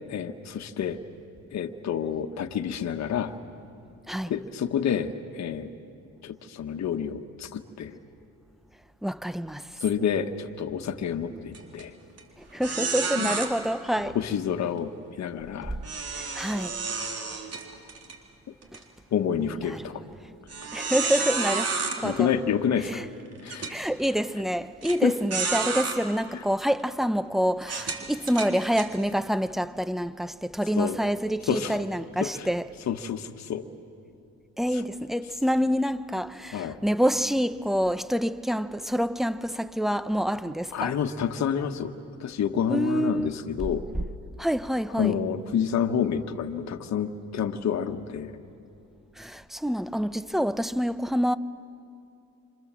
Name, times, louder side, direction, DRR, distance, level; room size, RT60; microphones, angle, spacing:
voice 1, 0.1-1.0 1.5-3.3 4.3-5.7 6.2-8.0 9.8-11.9 13.2-13.3 14.1-14.9 15.2-15.7 19.1-20.0 22.0-23.0 23.4-23.7 25.0-25.1 30.8-31.0 31.5-31.8 32.2-32.5 32.9-33.7 36.5-36.8 40.7-41.9 42.2-43.8 45.0-48.3, left 8 dB, 65° left, 1.4 m, -28 dB
voice 2, 9.0-9.7 11.3-11.4 12.5-14.2 16.1-16.8 18.7-18.8 19.6-19.9 20.7-21.7 22.0-22.3 22.8-23.1 23.7-32.7 34.6-41.0 42.7-43.3 43.9-44.0 44.4-45.2 49.2-51.4, equal, ahead, 0.8 m, -27 dB
sound 1, 11.5-11.8 12.2-12.3 12.6-13.5 15.8-18.2 18.6-18.8 19.4-19.5 20.5-22.0 22.8-22.9 23.5-23.7 24.8-25.0 25.3-26.0 26.6-26.8 27.6-28.9, right 4 dB, 55° right, 3.7 m, -30 dB
29.5 x 26.5 x 7.6 m
cardioid pair, 90°, 30 cm